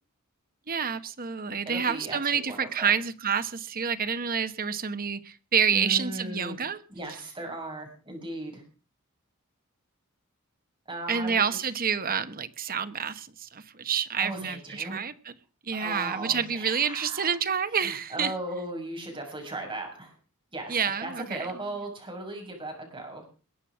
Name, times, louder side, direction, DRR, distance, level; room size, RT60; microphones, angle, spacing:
voice 1, 0.7-6.8 7.1-7.2 11.1-15.3 15.6-18.3 20.7-21.5, right 7 dB, 45° right, 12 dB, 1.2 m, -28 dB
voice 2, 1.6-2.9 5.7-6.6 6.9-8.6 10.9-11.6 14.2-15.0 15.7-17.3 17.8-20.1 20.5-23.2, right 1 dB, 25° right, 2 dB, 6.6 m, -37 dB
21.5 x 9.0 x 6.2 m, 0.37 s
head